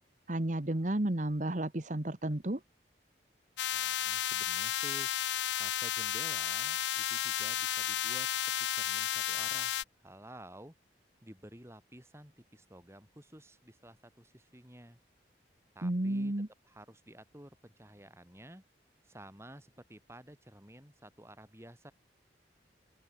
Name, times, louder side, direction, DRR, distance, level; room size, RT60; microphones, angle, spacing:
voice 1, 0.3-2.6 15.8-16.5, right 1 dB, 45° right, 1.3 m, -32 dB
sound 1, 3.6-9.8, left 12 dB, 80° left, 0.5 m, -33 dB
voice 2, 3.7-5.1 5.6-10.7 11.2-15.0 15.7-16.3 16.6-18.6 19.0-21.9, right 1 dB, 15° right, 6.0 m, -52 dB
open air
head